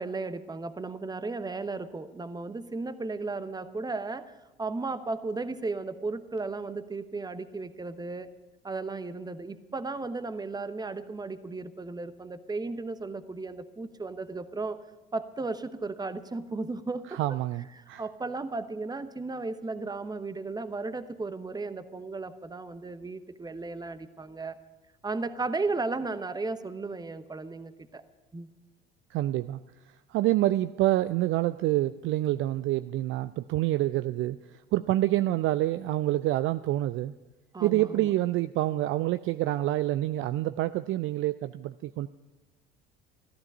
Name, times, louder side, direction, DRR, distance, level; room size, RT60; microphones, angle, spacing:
voice 1, 0.0-8.3 8.6-14.8 15.1-17.2 17.8-24.6 25.0-28.0 28.3-28.5 37.5-38.1, right 3 dB, 15° right, 12 dB, 1.0 m, -35 dB
voice 2, 17.1-18.0 29.1-29.6 30.1-37.1 37.6-42.1, right 15 dB, 45° right, 13 dB, 0.4 m, -27 dB
14.5 x 13.0 x 5.4 m, 1.1 s
hypercardioid pair, 65°, 29 cm